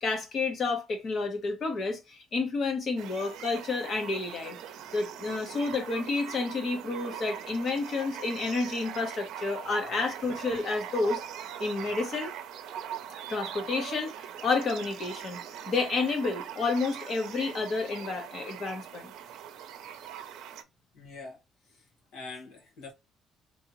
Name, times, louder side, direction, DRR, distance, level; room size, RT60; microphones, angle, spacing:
voice 1, 0.0-4.6 4.9-11.2 11.6-12.3 13.3-15.4 15.7-19.1, left 3 dB, 50° left, 1.2 m, -30 dB
sound 1, 3.0-20.6, right 9 dB, 80° right, 0.6 m, -41 dB
voice 2, 20.9-21.4 21.7-21.9 22.1-22.9, left 3 dB, 75° left, 1.5 m, -44 dB
3.3 x 2.9 x 2.9 m
cardioid pair, 120°, 0 cm